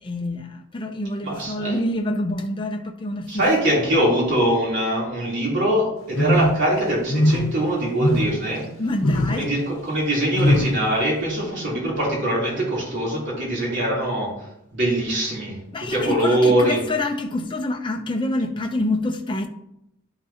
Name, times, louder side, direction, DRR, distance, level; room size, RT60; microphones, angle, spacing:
voice 1, 0.0-3.7 8.8-9.5 15.7-19.5, left 1 dB, 25° left, 0.6 m, -26 dB
voice 2, 1.2-1.8 3.3-8.6 9.3-14.3 14.7-15.5 15.9-16.8, right 1 dB, 55° right, 3.3 m, -22 dB
sound 1, 6.1-6.7 7.1-7.6 8.0-8.5 9.0-9.4 10.3-10.8, left 1 dB, 85° left, 0.8 m, -20 dB
11.0 x 5.9 x 2.9 m
head